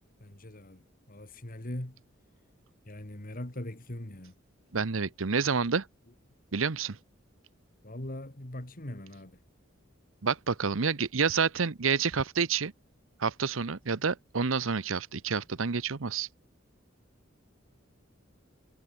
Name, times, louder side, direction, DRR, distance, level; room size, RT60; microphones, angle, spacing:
voice 1, 0.2-2.0 2.9-4.4 7.8-9.4, left 1 dB, 45° left, 2.6 m, -41 dB
voice 2, 4.7-5.9 6.5-7.0 10.2-12.7 13.2-16.3, right 5 dB, 80° right, 0.9 m, -28 dB
head